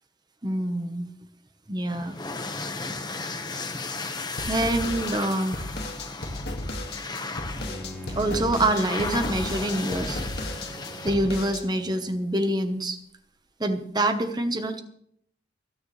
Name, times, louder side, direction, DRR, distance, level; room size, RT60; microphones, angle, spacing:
voice 1, 0.4-1.1 1.7-2.1 4.4-5.7 8.1-10.2 11.0-13.0 13.6-14.8, right 1 dB, 25° right, 7 dB, 1.1 m, -26 dB
sound 1, 1.9-11.5, left 3 dB, 25° left, 1.3 m, -35 dB
sound 2, 4.4-11.6, left 1 dB, 60° left, 2.0 m, -34 dB
Bowed string instrument, 7.6-12.5, right 1 dB, ahead, 2.5 m, -42 dB
27.0 x 9.7 x 3.3 m, 0.67 s
head